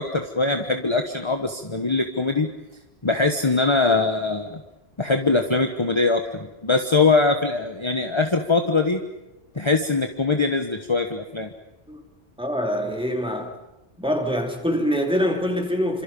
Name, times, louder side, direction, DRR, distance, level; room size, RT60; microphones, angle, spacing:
voice 1, 0.0-2.5 3.0-4.6 5.0-9.0 9.5-11.5, left 3 dB, 30° left, 5 dB, 1.3 m, -22 dB
voice 2, 12.4-13.6 14.0-16.0, equal, 5° right, 2 dB, 3.1 m, -24 dB
28.0 x 26.5 x 5.5 m, 1.0 s
omnidirectional pair, 1.1 m